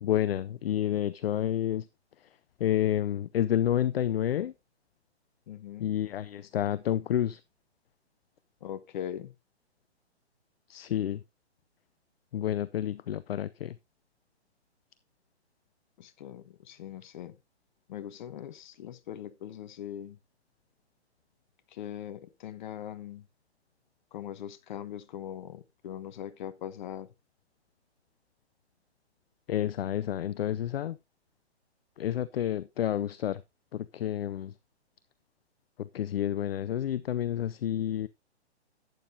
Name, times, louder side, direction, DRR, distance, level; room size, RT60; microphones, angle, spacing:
voice 1, 0.0-1.9 2.6-4.5 5.8-7.4 10.7-11.2 12.3-13.8 29.5-31.0 32.0-33.4 33.7-34.5 35.8-38.1, left 11 dB, 60° left, 0.6 m, -29 dB
voice 2, 5.5-5.9 8.6-9.3 16.0-17.4 17.9-20.2 21.7-23.3 24.1-27.1, left 10 dB, 45° left, 1.1 m, -41 dB
12.0 x 9.1 x 2.7 m
hypercardioid pair, 135°, 33 cm